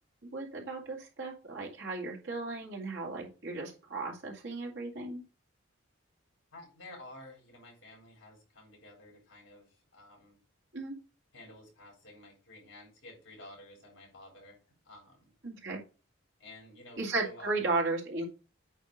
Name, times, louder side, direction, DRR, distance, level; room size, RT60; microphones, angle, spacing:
voice 1, 0.3-5.2 10.7-11.0 15.4-15.8 17.0-18.2, right 3 dB, 75° right, -2 dB, 2.4 m, -35 dB
voice 2, 6.5-10.4 11.3-14.6 14.8-15.3 16.4-17.6, left 1 dB, 65° left, 0 dB, 4.0 m, -52 dB
8.8 x 3.0 x 6.3 m, 0.35 s
head